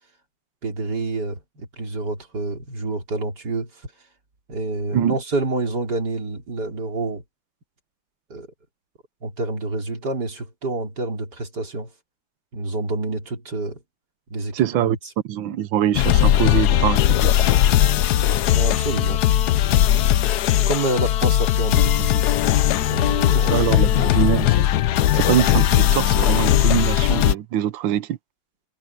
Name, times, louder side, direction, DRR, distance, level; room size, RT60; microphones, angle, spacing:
voice 1, 0.6-3.7 4.5-7.2 8.3-8.5 9.2-11.9 12.5-13.8 14.3-14.5 14.8-15.0 18.5-19.2 20.7-22.3 22.9-23.6 23.9-24.1, right 2 dB, 45° right, 4.2 m, -27 dB
voice 2, 14.5-15.0 15.2-17.5 23.3-24.6 25.1-28.2, right 11 dB, 70° right, 1.5 m, -23 dB
sound 1, 15.9-27.3, left 12 dB, 75° left, 0.9 m, -18 dB
omnidirectional pair, 2.4 m